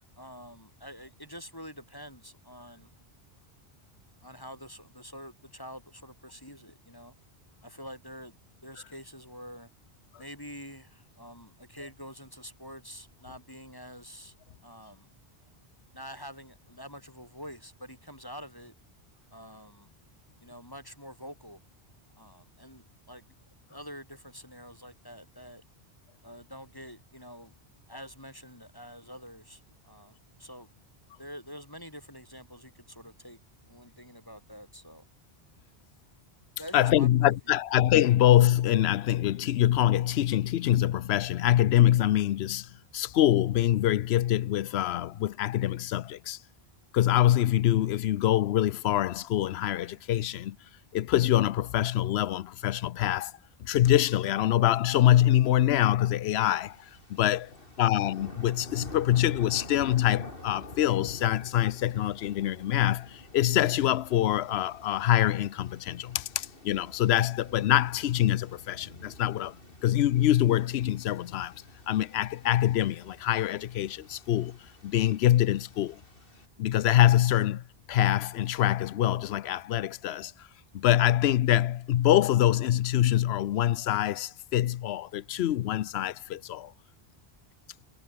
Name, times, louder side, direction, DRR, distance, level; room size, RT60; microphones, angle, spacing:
voice 1, 0.2-2.9 4.2-7.2 7.6-8.4 8.6-9.7 10.2-14.4 14.6-15.1 15.9-18.7 19.3-19.9 20.4-21.6 22.2-23.2 23.7-25.6 26.2-27.5 27.9-30.7 31.2-33.4 33.7-35.0 36.6-37.6, equal, 20° left, 7.0 m, -46 dB
voice 2, 36.7-46.4 46.9-50.6 50.9-53.3 53.6-69.5 69.8-71.5 71.9-76.0 76.6-80.5 80.7-86.7, left 12 dB, 85° left, 0.9 m, -25 dB
sound 1, 56.6-76.5, left 2 dB, 60° left, 5.3 m, -48 dB
omnidirectional pair, 1.0 m